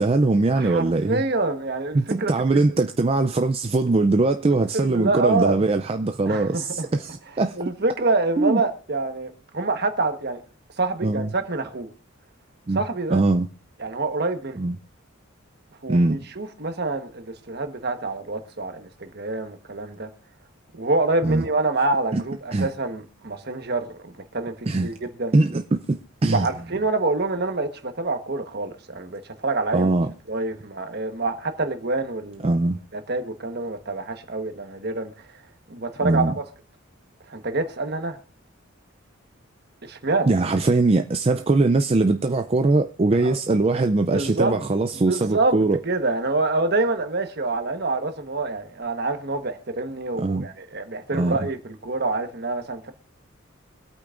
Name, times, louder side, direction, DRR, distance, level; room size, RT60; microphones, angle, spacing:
voice 1, 0.0-1.2 1.9-7.6 8.4-8.6 11.0-11.3 12.7-12.8 13.1-13.5 14.6-14.7 15.9-16.2 21.2-21.4 22.1-22.2 22.5-22.7 24.7-24.9 25.3-26.5 29.7-30.1 32.4-32.8 36.0-36.3 40.3-45.8 50.2-50.5 51.1-51.4, right 2 dB, 30° right, 0.4 m, -21 dB
voice 2, 0.6-2.6 4.5-5.6 6.2-6.9 7.6-10.4 10.8-11.9 12.7-13.2 13.8-14.6 15.8-20.1 20.7-25.3 26.3-29.9 30.3-32.6 32.9-35.1 35.7-36.4 37.3-38.2 39.8-40.3 43.2-43.6 44.1-44.6 45.1-52.9, right 3 dB, 50° right, 1.3 m, -26 dB
24.5 x 8.6 x 2.5 m
head